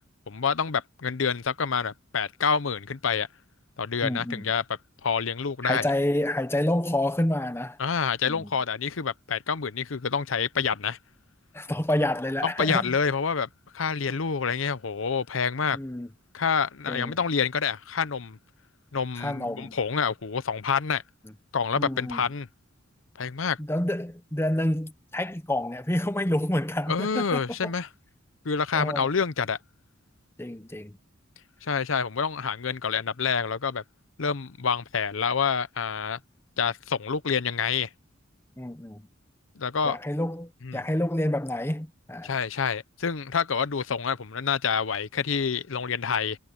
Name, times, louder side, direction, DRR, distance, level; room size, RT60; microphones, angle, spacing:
voice 1, 0.3-3.3 3.8-4.6 5.0-5.8 7.8-11.0 12.6-13.5 13.7-15.8 16.3-18.4 18.9-21.0 21.5-22.5 23.2-23.6 26.9-27.9 28.4-29.6 31.6-33.8 34.2-36.2 36.6-37.9 39.6-40.0 40.7-40.8 42.2-46.4, left 6 dB, 80° left, 0.8 m, -27 dB
voice 2, 4.0-4.5 5.6-7.8 8.3-8.5 11.5-13.0 15.7-16.1 16.9-17.2 19.2-19.8 21.8-22.2 23.6-27.7 28.7-29.1 30.4-31.0 38.6-39.1 39.8-42.3, left 1 dB, 15° left, 1.1 m, -28 dB
head